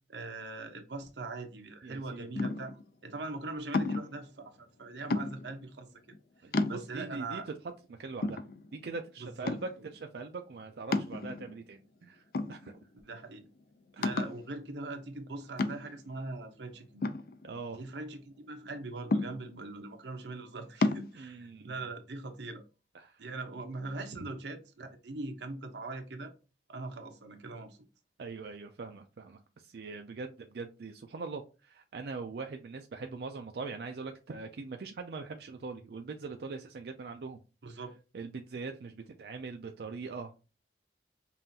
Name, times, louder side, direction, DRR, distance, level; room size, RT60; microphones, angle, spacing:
voice 1, 0.1-5.9 6.7-7.4 9.2-9.5 13.0-13.5 14.0-17.0 17.7-22.6 23.2-26.3 26.7-27.8 37.6-37.9, right 3 dB, 85° right, 0.8 m, -41 dB
voice 2, 1.8-2.3 6.4-7.5 8.0-8.4 8.7-12.8 13.9-14.1 17.4-17.8 21.1-21.8 22.9-23.3 24.2-24.3 28.2-37.4 37.7-37.8 38.1-40.3, right 4 dB, 65° right, 0.4 m, -42 dB
sound 1, 2.4-2.8 3.7-4.2 5.1-5.6 6.1-6.2 6.5-7.2 7.7-7.8 8.2-9.0 9.5-9.9 10.9-11.6 12.3-13.0 13.3-13.4 14.0-14.5 15.6-16.1 17.0-17.9 19.1-19.7 20.8-21.1, left 3 dB, 55° left, 0.4 m, -31 dB
5.5 x 2.5 x 2.7 m
head